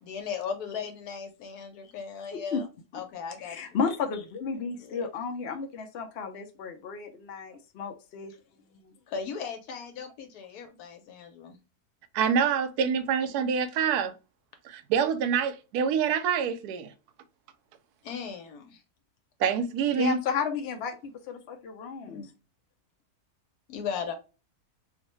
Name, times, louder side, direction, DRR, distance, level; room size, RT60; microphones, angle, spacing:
voice 1, 0.0-2.7 2.9-3.8 4.8-5.1 9.1-11.6 18.0-18.8 22.1-22.3 23.7-24.1, left 6 dB, 80° left, 1.2 m, -37 dB
voice 2, 2.3-2.6 3.4-8.3 8.8-8.9 20.0-22.3, left 5 dB, 65° left, 0.6 m, -33 dB
voice 3, 12.1-14.1 14.6-16.9 19.4-20.2, right 7 dB, 80° right, 1.1 m, -26 dB
3.8 x 2.1 x 3.0 m
omnidirectional pair, 1.6 m